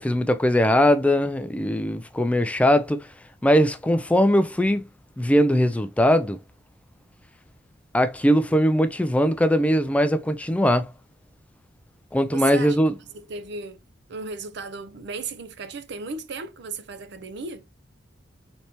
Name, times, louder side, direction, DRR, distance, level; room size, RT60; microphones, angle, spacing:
voice 1, 0.0-3.1 3.4-4.8 5.2-6.4 7.9-10.9 12.1-12.9, equal, 5° left, 0.3 m, -20 dB
voice 2, 12.3-12.8 13.1-13.8 14.1-17.7, right 4 dB, 65° right, 0.6 m, -35 dB
4.2 x 3.3 x 2.8 m
head